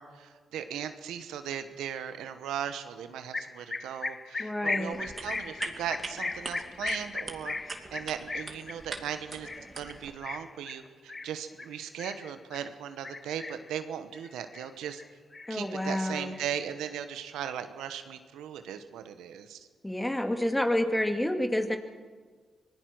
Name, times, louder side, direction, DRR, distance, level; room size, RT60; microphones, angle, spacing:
voice 1, 0.0-7.6 7.9-9.5 9.7-15.0 15.5-19.6, right 9 dB, 90° right, 9 dB, 1.2 m, -38 dB
sound 1, 3.3-12.7 13.0-13.8 14.1-15.1 15.3-16.7, left 3 dB, 30° left, 0.7 m, -37 dB
voice 2, 4.4-5.0 15.5-16.4 19.8-21.8, left 1 dB, 10° left, 5 dB, 2.4 m, -29 dB
sound 2, 4.9-10.1, right 3 dB, 40° right, 2.6 m, -43 dB
25.0 x 19.0 x 6.3 m, 1.5 s
supercardioid pair, 55°, 0 cm